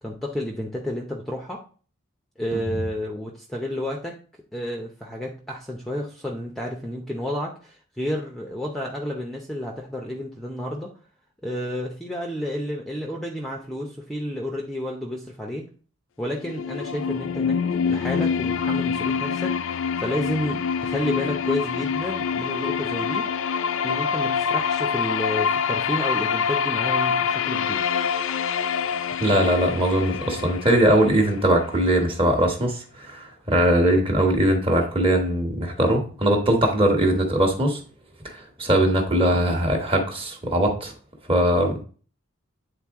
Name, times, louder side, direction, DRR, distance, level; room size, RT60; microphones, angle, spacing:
voice 1, 0.0-1.6 2.4-4.2 4.5-10.9 11.4-15.7 16.2-17.6 17.9-23.2 23.8-27.8, left 1 dB, ahead, 0 dB, 0.6 m, -31 dB
sound 1, 16.3-32.2, left 6 dB, 65° left, 0.4 m, -26 dB
voice 2, 29.2-37.8 38.2-40.9 41.3-41.8, right 1 dB, 25° right, 2 dB, 1.2 m, -21 dB
9.0 x 3.8 x 3.6 m, 0.40 s
head